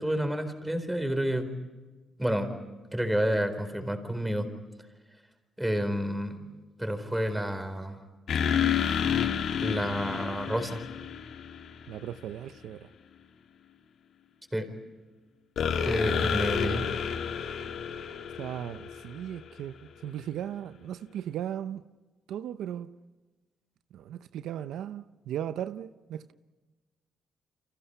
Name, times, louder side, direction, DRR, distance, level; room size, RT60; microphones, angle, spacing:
voice 1, 0.0-1.5 2.2-2.5 2.9-4.5 5.6-6.5 6.8-8.0 9.6-10.8 14.5-14.7 15.8-16.8, equal, 5° right, 4.3 m, -29 dB
sound 1, 8.3-12.0 15.6-19.5, left 7 dB, 65° left, 2.3 m, -30 dB
voice 2, 11.9-12.9 16.6-16.9 18.4-21.8 22.3-22.9 23.9-26.3, right 10 dB, 80° right, 0.7 m, -37 dB
30.0 x 25.5 x 5.7 m
cardioid pair, 90°, 0 cm